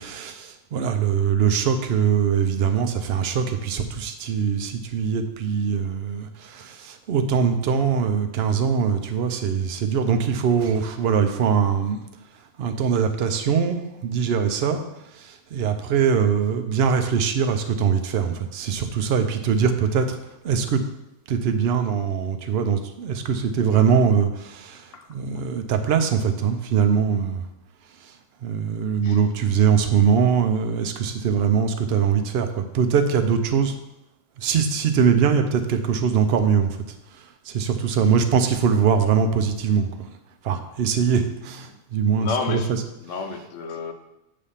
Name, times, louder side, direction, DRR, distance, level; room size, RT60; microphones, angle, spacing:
voice 1, 0.0-12.0 12.6-20.2 20.4-20.8 21.3-27.5 28.0-33.7 34.4-40.1 40.4-42.8 43.1-43.3, right 7 dB, 60° right, 7 dB, 0.8 m, -22 dB
voice 2, 42.2-42.7 43.0-43.9, left 4 dB, 70° left, 6 dB, 1.0 m, -30 dB
7.4 x 3.4 x 5.6 m, 0.90 s
omnidirectional pair, 1.4 m